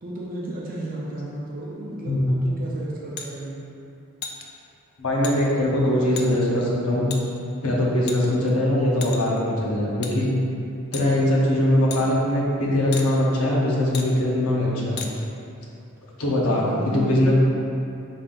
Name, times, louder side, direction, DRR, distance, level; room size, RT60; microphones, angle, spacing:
voice 1, 0.0-3.6 16.5-17.3, right 1 dB, 40° right, -5 dB, 0.5 m, -33 dB
sound 1, 3.2-3.3 4.2-4.4 5.2-5.4 6.2-6.3 7.1-7.2 8.1-8.5 9.0-9.4 10.0-10.1 10.9-11.1 11.9-12.0 12.9-13.1 13.9-14.1 15.0-15.1, left 6 dB, 50° left, 0.4 m, -34 dB
voice 2, 5.0-7.2 7.6-10.3 10.9-15.0 16.2-17.3, left 1 dB, 90° left, -4 dB, 0.8 m, -21 dB
5.3 x 3.7 x 2.5 m, 2.7 s
head